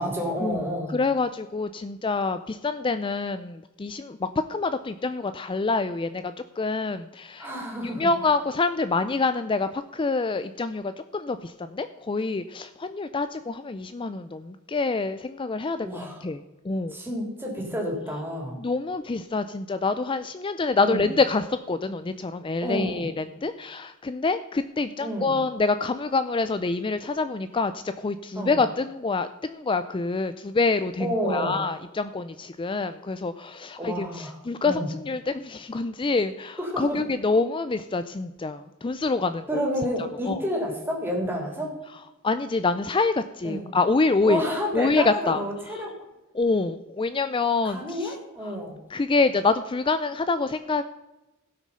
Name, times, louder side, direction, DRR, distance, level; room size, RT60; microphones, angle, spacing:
voice 1, 0.0-1.0 7.4-8.1 15.8-16.2 16.9-18.6 20.8-21.0 22.6-23.1 25.0-25.3 28.3-28.6 31.0-31.6 33.8-34.4 34.6-34.9 36.6-37.0 39.5-41.7 43.4-43.6 44.2-45.9 47.6-48.8, equal, 10° right, -1 dB, 3.3 m, -30 dB
voice 2, 0.9-7.5 7.8-15.9 16.2-17.0 18.6-39.6 40.3-40.4 42.2-44.4 44.7-45.4 45.7-45.8 46.3-48.1 48.4-48.5 48.9-50.8, left 3 dB, 25° left, 11 dB, 0.4 m, -26 dB
16.5 x 6.2 x 5.5 m, 1.0 s
head